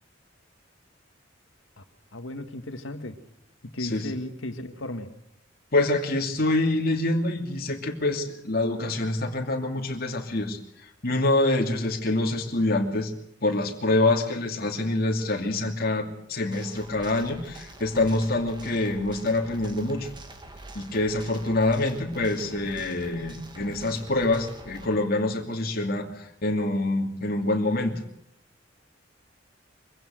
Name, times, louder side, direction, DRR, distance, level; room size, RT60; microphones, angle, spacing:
voice 1, 2.1-3.2 3.6-5.1, left 1 dB, 80° left, 8 dB, 1.9 m, -35 dB
voice 2, 3.8-4.1 5.7-10.6 11.0-13.1 13.4-20.1 20.7-28.0, left 2 dB, 50° left, 2 dB, 2.7 m, -26 dB
sound 1, 16.5-24.9, right 1 dB, 25° right, 2.2 m, -45 dB
23.5 x 16.0 x 7.7 m, 0.76 s
head